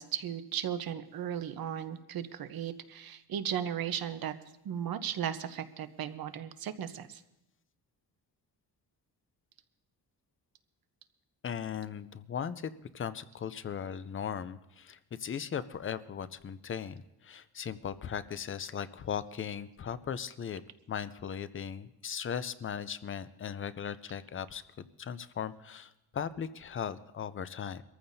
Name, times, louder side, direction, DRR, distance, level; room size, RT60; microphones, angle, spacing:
voice 1, 0.0-4.4 4.6-7.2, right 9 dB, 65° right, 11 dB, 0.9 m, -36 dB
voice 2, 11.4-20.6 20.9-27.8, left 8 dB, 35° left, 14 dB, 0.5 m, -38 dB
24.0 x 14.5 x 2.7 m, 0.89 s
wide cardioid pair, 170°, 39 cm